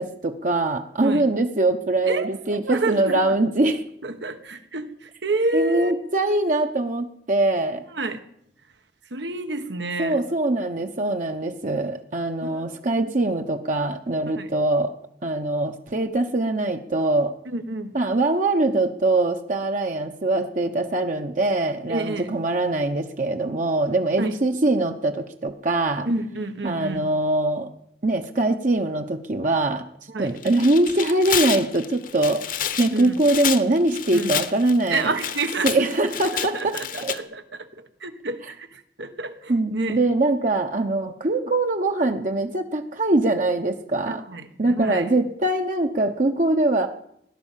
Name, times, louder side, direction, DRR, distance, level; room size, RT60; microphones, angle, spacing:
voice 1, 0.0-3.8 5.5-7.9 10.0-14.9 15.2-17.3 17.9-26.1 26.6-27.7 28.0-29.8 30.2-35.1 35.6-37.1 39.5-44.2 44.6-46.9, right 2 dB, 45° right, 4 dB, 0.9 m, -23 dB
voice 2, 2.1-3.3 4.0-5.9 7.9-8.2 9.1-10.2 12.4-12.7 14.4-14.5 17.4-17.9 21.9-22.3 24.2-24.3 26.0-27.1 30.1-30.3 32.9-33.2 34.1-34.4 34.9-35.9 36.3-40.0 44.0-45.1, right 2 dB, 90° right, 8 dB, 1.5 m, -29 dB
Tearing, 30.3-37.2, left 9 dB, 50° left, 1.0 m, -29 dB
17.0 x 11.0 x 7.4 m, 0.73 s
head